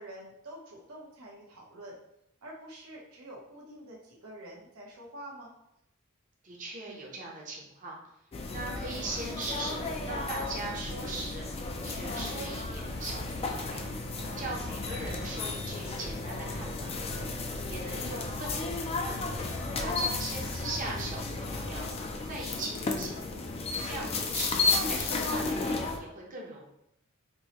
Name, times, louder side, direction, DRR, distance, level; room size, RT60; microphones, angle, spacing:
voice 1, 0.0-2.0 2.4-5.5 14.2-14.6 17.1-17.3, right 1 dB, 90° right, -3 dB, 1.0 m, -47 dB
voice 2, 6.4-8.0 8.5-11.4 11.8-13.9 14.4-17.0 17.7-19.2 19.8-21.9 22.2-23.2 23.8-26.6, right 2 dB, 40° right, -2 dB, 0.7 m, -40 dB
sound 1, 8.3-26.0, left 3 dB, 30° left, 0.3 m, -33 dB
4.4 x 2.1 x 2.9 m, 0.79 s
head